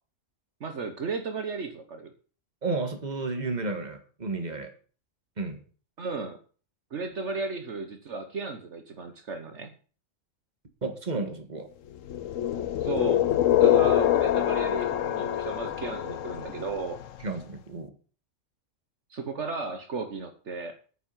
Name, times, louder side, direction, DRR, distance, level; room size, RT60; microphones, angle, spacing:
voice 1, 0.6-2.1 6.0-6.4 6.9-9.7 12.8-13.3 13.6-17.0 19.1-20.8, right 4 dB, 65° right, 7 dB, 1.5 m, -34 dB
voice 2, 2.6-4.7 5.4-5.6 10.8-11.7 17.2-17.9, right 3 dB, 35° right, 6 dB, 2.0 m, -32 dB
sound 1, 12.1-17.0, left 11 dB, 85° left, 1.1 m, -25 dB
9.5 x 7.1 x 8.2 m, 0.40 s
omnidirectional pair, 1.3 m